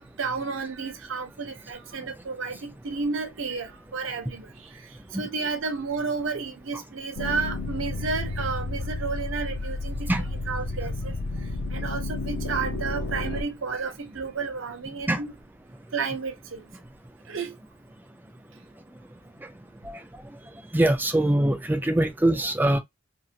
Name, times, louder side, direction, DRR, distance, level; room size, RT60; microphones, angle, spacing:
voice 1, 0.0-15.3 15.9-16.7 17.3-17.6, right 4 dB, 75° right, 0.7 m, -32 dB
sound 1, 7.2-13.4, left 2 dB, 75° left, 0.7 m, -31 dB
voice 2, 20.7-22.8, right 1 dB, 10° right, 0.5 m, -22 dB
2.7 x 2.6 x 2.4 m
head